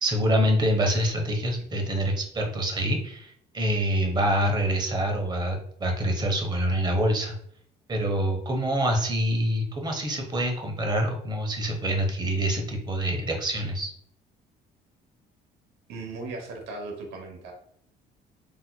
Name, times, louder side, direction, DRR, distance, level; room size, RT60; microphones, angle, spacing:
voice 1, 0.0-7.4 7.9-13.9, equal, 25° right, 2 dB, 0.9 m, -26 dB
voice 2, 15.9-17.5, right 3 dB, 85° right, 2 dB, 0.9 m, -37 dB
4.2 x 2.9 x 2.2 m, 0.65 s
cardioid pair, 110°, 17 cm